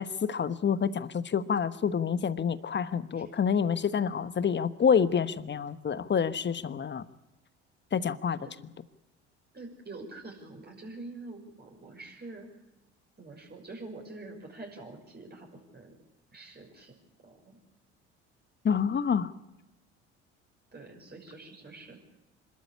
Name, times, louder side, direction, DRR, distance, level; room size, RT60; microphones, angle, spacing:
voice 1, 0.0-7.0 7.9-8.4 18.6-19.3, left 7 dB, 30° left, 15 dB, 1.2 m, -28 dB
voice 2, 9.5-12.5 13.2-15.9 16.3-17.0 17.2-17.6 20.7-22.0, right 2 dB, 30° right, 0 dB, 6.1 m, -46 dB
25.5 x 13.0 x 8.6 m, 0.98 s
hypercardioid pair, 60°, 35 cm